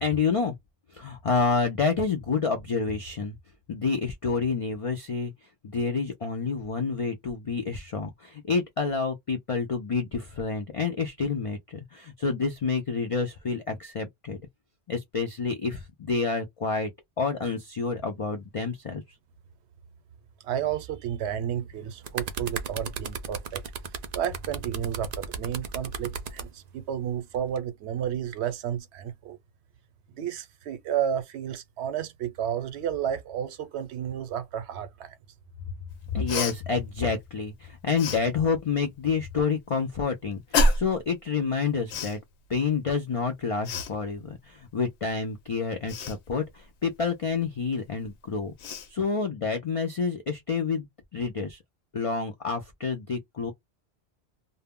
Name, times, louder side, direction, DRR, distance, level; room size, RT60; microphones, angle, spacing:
voice 1, 0.0-0.5 0.9-3.4 3.7-5.3 5.6-14.4 14.9-16.9 17.2-19.0 36.1-42.2 42.5-48.5 48.9-50.9 51.1-51.6 51.9-53.5, left 5 dB, 65° left, 0.3 m, -28 dB
voice 2, 20.4-23.6 24.1-29.4 30.1-35.1, right 9 dB, 80° right, 0.8 m, -31 dB
sound 1, 21.8-26.5 27.3-27.6, right 6 dB, 55° right, 0.4 m, -35 dB
Cough, 36.3-36.6 38.0-38.2 40.5-41.0 41.9-42.2 43.7-43.9 45.9-46.2 48.0-48.1 48.6-48.9, left 2 dB, 85° left, 0.9 m, -26 dB
2.1 x 2.0 x 3.5 m
omnidirectional pair, 1.1 m